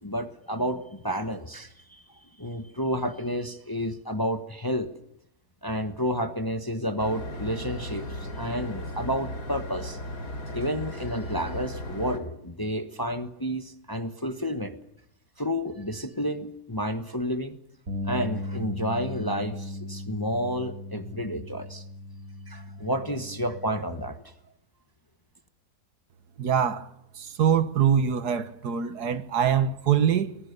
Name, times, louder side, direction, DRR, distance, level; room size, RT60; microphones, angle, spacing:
voice 1, 0.0-2.0 2.4-4.9 5.6-10.0 10.5-14.8 15.4-17.6 18.0-21.8 22.5-24.2, equal, 15° left, 1.1 m, -30 dB
sound 1, 7.0-12.2, left 1 dB, 75° left, 3.7 m, -36 dB
Bass guitar, 17.9-24.1, left 1 dB, 55° right, 4.4 m, -37 dB
voice 2, 26.4-26.9 27.2-30.4, right 8 dB, 75° right, 1.8 m, -24 dB
24.5 x 20.0 x 6.8 m
omnidirectional pair, 1.7 m